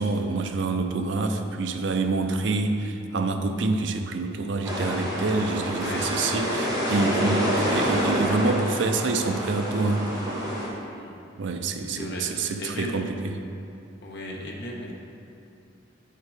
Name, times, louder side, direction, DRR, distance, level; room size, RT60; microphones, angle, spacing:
voice 1, 0.0-10.1 11.4-13.4, right 3 dB, 70° right, 6 dB, 0.5 m, -27 dB
sound 1, 4.6-10.7, equal, 20° right, 1.4 m, -27 dB
voice 2, 7.1-7.5 10.9-11.2 11.8-13.1 14.0-14.9, equal, 65° left, -2 dB, 1.1 m, -36 dB
8.2 x 4.6 x 4.7 m, 2.6 s
head